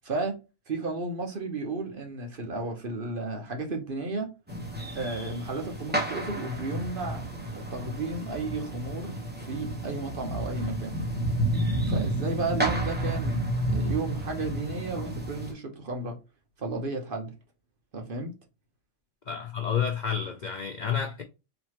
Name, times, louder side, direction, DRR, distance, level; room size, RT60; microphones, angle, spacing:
voice 1, 0.0-0.4 0.7-4.3 4.9-7.2 7.5-9.2 9.5-11.0 11.9-16.2 16.6-17.3 17.9-18.3, right 3 dB, 45° right, 1.0 m, -33 dB
sound 1, 4.5-15.5, right 1 dB, 10° right, 1.0 m, -31 dB
voice 2, 19.3-21.2, left 8 dB, 75° left, 0.4 m, -30 dB
4.1 x 3.0 x 2.9 m
omnidirectional pair, 1.4 m